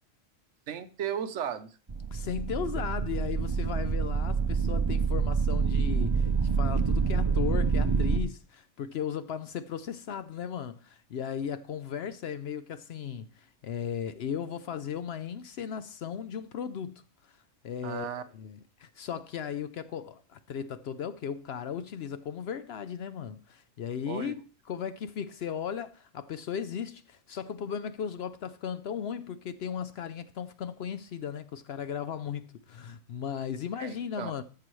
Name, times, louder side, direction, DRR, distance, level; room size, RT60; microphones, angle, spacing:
voice 1, 0.7-1.7 17.8-18.2 24.1-24.3 33.8-34.3, right 9 dB, 65° right, 1.0 m, -35 dB
sound 1, 1.9-8.2, right 5 dB, 25° right, 0.7 m, -27 dB
voice 2, 2.1-17.3 17.6-24.4 24.7-34.4, left 8 dB, 65° left, 0.7 m, -36 dB
14.0 x 6.8 x 3.1 m
omnidirectional pair, 1.3 m